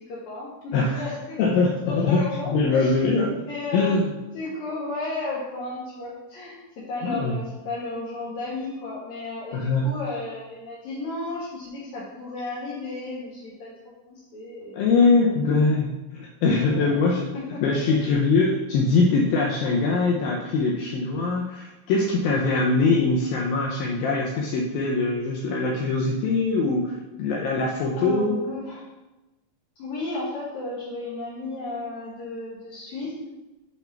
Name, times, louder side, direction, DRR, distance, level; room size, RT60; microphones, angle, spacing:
voice 1, 0.1-1.4 1.8-2.9 3.5-4.0 4.3-14.9 15.2-15.3 15.6-15.7 16.7-17.0 17.3-17.8 28.0-28.8 29.8-33.2, left 3 dB, 60° left, -9 dB, 2.3 m, -33 dB
voice 2, 0.7-1.0 1.4-2.2 2.5-3.5 3.7-4.1 7.0-7.4 9.5-9.9 14.7-17.3 17.6-26.9 27.2-28.4, left 3 dB, 75° left, -1 dB, 2.3 m, -22 dB
8.3 x 3.5 x 5.7 m, 1.0 s
omnidirectional pair, 4.7 m